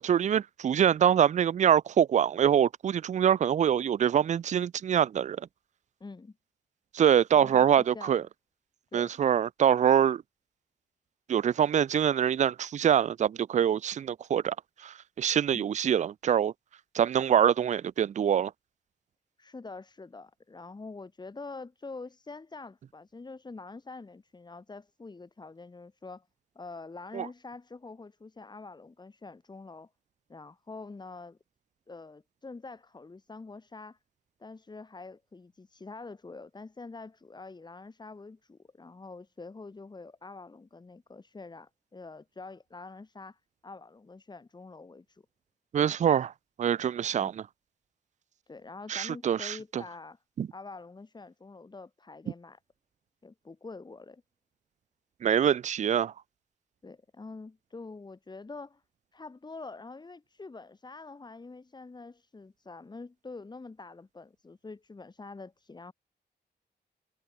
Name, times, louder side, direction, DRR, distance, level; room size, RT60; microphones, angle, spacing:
voice 1, 0.0-5.4 6.9-8.2 8.9-10.2 11.3-14.6 14.8-16.5 16.9-18.5 27.1-27.3 45.7-46.3 46.6-47.5 48.9-49.8 50.4-50.5 55.2-56.1, right 9 dB, 45° right, 0.4 m, -24 dB
voice 2, 6.0-6.3 7.3-8.2 8.9-9.2 15.5-15.7 19.4-26.3 26.5-29.9 30.3-31.4 31.9-34.0 34.4-45.2 45.7-45.9 47.1-47.3 48.5-50.2 50.5-52.6 53.2-54.2 56.8-58.8 59.1-65.9, left 3 dB, 25° left, 3.1 m, -46 dB
wide cardioid pair, 150°, 17 cm